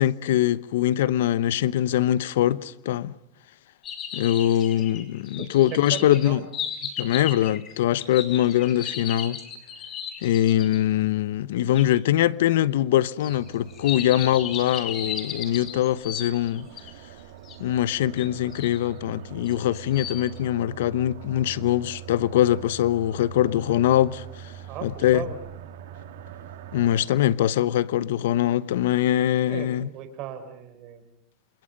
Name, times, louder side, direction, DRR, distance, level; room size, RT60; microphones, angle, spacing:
voice 1, 0.0-3.1 4.1-6.4 7.0-9.4 10.2-16.7 17.6-24.5 24.8-25.2 26.7-29.9, left 12 dB, 85° left, 0.9 m, -23 dB
sound 1, 3.8-10.8 11.7-11.8 13.2-16.9 17.4-17.6 18.2-18.8 19.4-20.3, left 8 dB, 35° left, 4.7 m, -35 dB
voice 2, 5.4-6.4 24.7-25.4 29.5-31.0, right 10 dB, 45° right, 4.8 m, -37 dB
sound 2, 13.3-27.1, right 9 dB, 85° right, 3.6 m, -43 dB
29.5 x 27.5 x 5.4 m
supercardioid pair, 145°, 0 cm